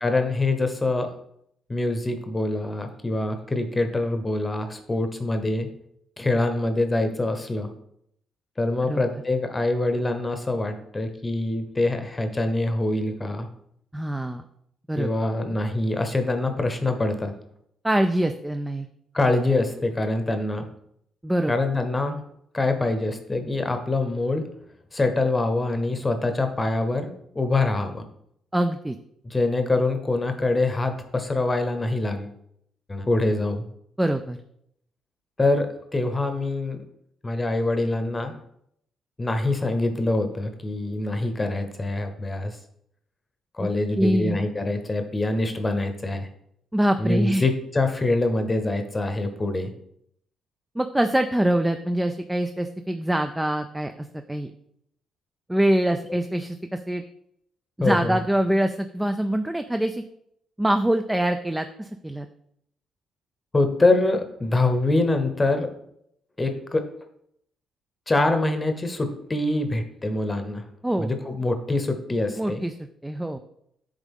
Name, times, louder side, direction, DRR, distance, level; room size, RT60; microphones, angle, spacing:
voice 1, 0.0-1.1 1.7-5.7 6.2-7.7 8.6-13.5 15.0-17.3 19.1-20.7 21.5-22.2 22.5-24.5 24.9-28.0 29.2-32.3 32.9-33.6 35.4-36.8 37.2-38.3 39.2-42.6 43.6-46.3 47.0-49.7 56.1-56.2 57.8-58.2 63.5-65.7 66.4-66.9 68.1-70.6 71.0-72.6, left 2 dB, 20° left, 7 dB, 0.9 m, -24 dB
voice 2, 13.9-14.4 14.9-15.1 17.8-18.9 21.2-21.5 28.5-29.0 34.0-34.4 43.6-43.7 44.0-44.4 46.7-47.5 50.8-54.5 55.5-57.0 57.8-60.0 60.6-62.3 70.8-71.1 72.4-72.7 73.0-73.4, right 1 dB, 10° right, 7 dB, 0.4 m, -24 dB
8.0 x 3.6 x 3.6 m, 0.72 s
cardioid pair, 90°, 0 cm